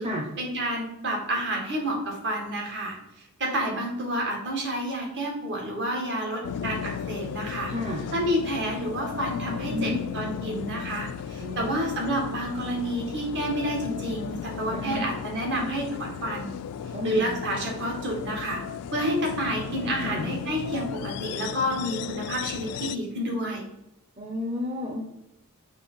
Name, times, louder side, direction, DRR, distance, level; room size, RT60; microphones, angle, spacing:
voice 1, 0.4-3.0 3.4-7.7 8.1-16.5 17.0-18.6 18.9-23.7, right 1 dB, 50° right, 0 dB, 1.9 m, -29 dB
sound 1, 6.4-23.0, left 8 dB, 85° left, 0.3 m, -35 dB
voice 2, 7.7-8.0 9.7-10.0 11.4-11.7 14.7-15.0 16.9-17.3 20.0-20.2 24.2-25.1, left 1 dB, 25° right, -2 dB, 0.8 m, -31 dB
6.7 x 3.2 x 5.6 m, 0.88 s
head